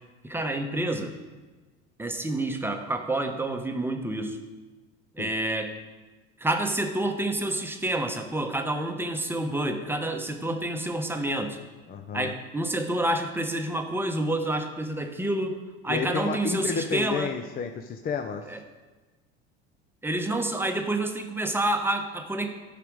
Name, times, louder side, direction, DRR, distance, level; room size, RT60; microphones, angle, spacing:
voice 1, 0.2-1.1 2.0-4.4 5.2-5.7 6.4-11.6 12.1-17.4 18.5-18.6 20.0-22.5, right 1 dB, 5° right, 5 dB, 0.9 m, -28 dB
voice 2, 11.9-12.3 15.9-18.5, left 6 dB, 30° left, 5 dB, 0.5 m, -31 dB
11.5 x 5.1 x 4.7 m, 1.3 s
supercardioid pair, 100°, 30 cm